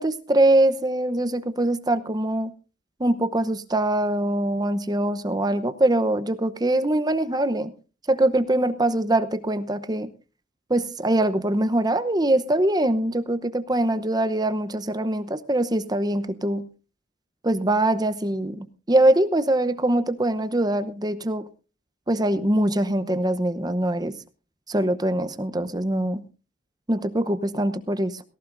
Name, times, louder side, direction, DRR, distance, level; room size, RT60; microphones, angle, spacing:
voice 1, 0.0-2.5 3.0-7.7 8.1-10.1 10.7-16.7 17.4-21.5 22.1-24.2 24.7-26.2 26.9-28.2, right 1 dB, 20° right, 11 dB, 0.8 m, -23 dB
18.0 x 17.0 x 2.6 m, 0.34 s
head